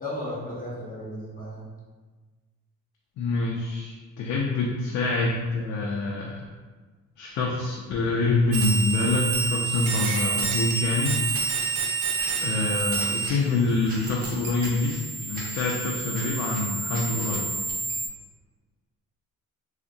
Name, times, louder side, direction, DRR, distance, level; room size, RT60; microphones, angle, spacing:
voice 1, 0.0-1.7, left 1 dB, 30° left, -6 dB, 0.9 m, -35 dB
voice 2, 3.2-6.5 7.2-11.2 12.4-17.5, left 3 dB, 70° left, -2 dB, 0.5 m, -26 dB
sound 1, 8.5-13.3 13.6-18.1, right 5 dB, 85° right, 0.6 m, -29 dB
sound 2, 11.3-17.4, right 1 dB, 30° right, 1.0 m, -44 dB
3.6 x 2.1 x 2.6 m, 1.4 s
cardioid pair, 90°, 30 cm